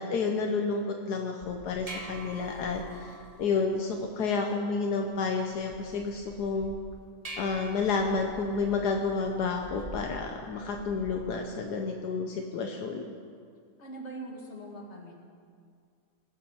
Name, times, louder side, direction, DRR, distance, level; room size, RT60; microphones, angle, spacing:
voice 1, 0.0-6.8 7.4-13.0, left 4 dB, 80° left, 3 dB, 1.4 m, -30 dB
sound 1, 1.4-11.4, right 1 dB, 25° right, 1.0 m, -46 dB
voice 2, 13.8-15.2, right 2 dB, 45° left, 0 dB, 2.2 m, -42 dB
19.5 x 7.9 x 5.8 m, 2.1 s
omnidirectional pair, 1.7 m